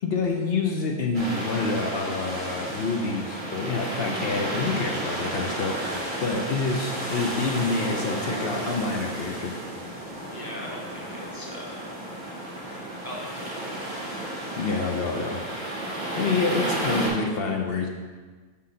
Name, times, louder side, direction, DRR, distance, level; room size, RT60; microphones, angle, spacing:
voice 1, 0.0-9.5 12.7-12.8 14.2-15.4 16.2-17.9, left 3 dB, 60° left, 1 dB, 0.8 m, -27 dB
sound 1, 1.1-17.1, right 1 dB, 40° right, 1.9 m, -32 dB
voice 2, 10.2-11.8 13.0-13.8, equal, 20° right, -3 dB, 0.6 m, -39 dB
5.6 x 4.2 x 5.0 m, 1.4 s
omnidirectional pair, 1.3 m